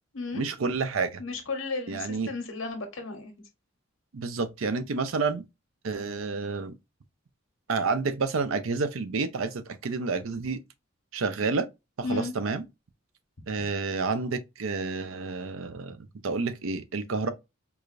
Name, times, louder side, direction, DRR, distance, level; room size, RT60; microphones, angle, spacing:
voice 1, 0.3-1.2 1.9-2.3 4.1-5.4 5.8-6.7 7.7-10.6 11.1-11.7 12.0-12.6 13.5-17.3, right 4 dB, 90° right, 0.6 m, -29 dB
voice 2, 1.2-3.3 12.0-12.3, left 3 dB, 85° left, 1.1 m, -34 dB
4.8 x 2.4 x 2.5 m
head